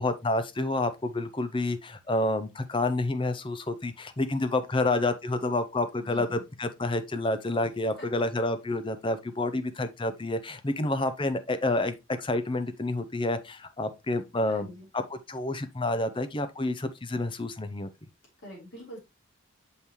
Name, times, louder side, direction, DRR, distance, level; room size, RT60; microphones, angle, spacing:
voice 1, 0.0-14.7 14.9-17.9, left 2 dB, 25° left, 0.6 m, -29 dB
voice 2, 6.0-6.4 8.0-8.2 14.5-14.9 18.4-19.0, left 1 dB, 55° left, 4.1 m, -45 dB
6.5 x 5.6 x 3.0 m
head